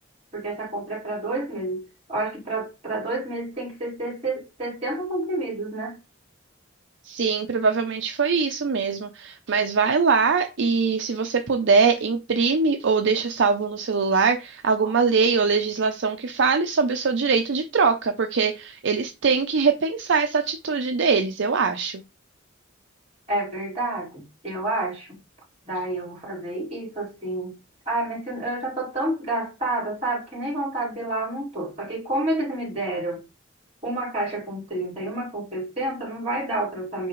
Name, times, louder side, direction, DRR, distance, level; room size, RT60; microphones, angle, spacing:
voice 1, 0.3-6.0 14.8-14.9 23.3-25.1 25.6-27.6 27.9-33.2 33.8-37.1, right 2 dB, 35° right, 4.4 m, -29 dB
voice 2, 7.0-22.0, right 5 dB, 60° right, 0.6 m, -22 dB
9.5 x 3.4 x 3.1 m
head